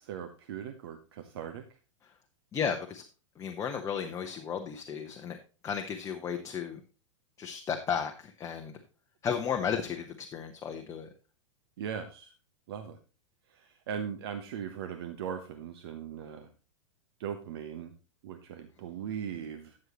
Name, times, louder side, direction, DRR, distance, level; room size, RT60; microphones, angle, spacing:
voice 1, 0.0-1.6 11.8-12.3 12.7-13.0 13.5-16.5 17.2-17.9 18.2-19.8, right 8 dB, 50° right, 8 dB, 1.0 m, -39 dB
voice 2, 2.5-3.0 3.4-5.4 5.6-6.8 7.4-8.7 9.2-11.1, left 7 dB, 20° left, 4 dB, 0.9 m, -34 dB
12.5 x 7.5 x 3.0 m, 0.34 s
figure-of-eight pair, 95°, 16 cm